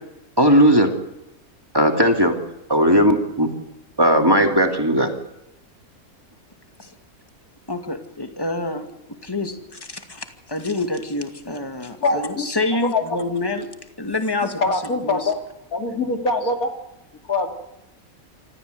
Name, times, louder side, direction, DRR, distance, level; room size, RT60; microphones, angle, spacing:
voice 1, 0.4-0.9 1.7-2.4 2.7-3.5 4.0-5.1, equal, 15° right, 3 dB, 2.4 m, -16 dB
voice 2, 7.7-8.9 9.2-13.7 14.0-15.3, left 2 dB, 15° left, 5 dB, 2.3 m, -27 dB
voice 3, 12.0-12.5 12.8-13.2 14.6-15.4 15.7-16.7 17.3-17.5, left 3 dB, 80° left, 4 dB, 3.1 m, -23 dB
27.0 x 14.0 x 7.9 m, 0.89 s
omnidirectional pair, 1.5 m